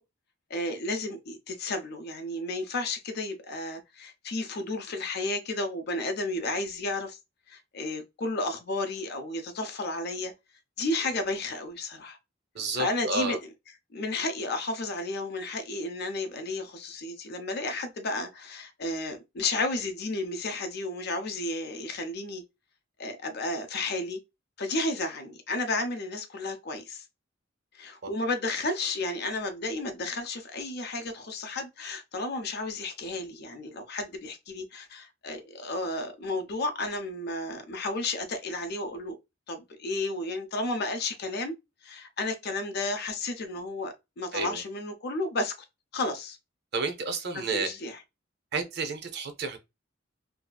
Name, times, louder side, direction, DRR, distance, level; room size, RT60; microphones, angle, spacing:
voice 1, 0.5-7.2 7.5-10.3 10.8-12.2 12.8-13.4 13.9-22.4 23.0-24.2 24.6-27.0 27.7-39.2 39.5-41.5 41.8-45.5 45.9-46.4 47.3-48.0, left 2 dB, 55° left, 0.6 m, -32 dB
voice 2, 12.5-13.4 28.0-28.1 44.3-44.6 46.7-47.7 48.5-49.6, right 3 dB, 55° right, 0.6 m, -31 dB
2.7 x 2.4 x 2.2 m
head